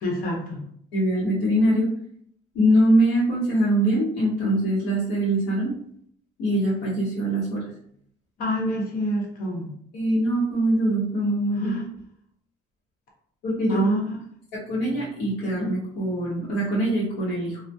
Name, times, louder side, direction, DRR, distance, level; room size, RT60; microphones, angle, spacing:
voice 1, 0.0-0.6 8.4-9.7 11.6-11.9 13.7-14.2, equal, 55° left, -2 dB, 0.9 m, -27 dB
voice 2, 0.9-1.9 2.5-5.7 6.4-7.6 9.9-11.7 13.4-13.8 14.5-17.6, right 1 dB, 90° left, -9 dB, 0.8 m, -23 dB
2.7 x 2.0 x 2.2 m, 0.67 s
cardioid pair, 110°, 17 cm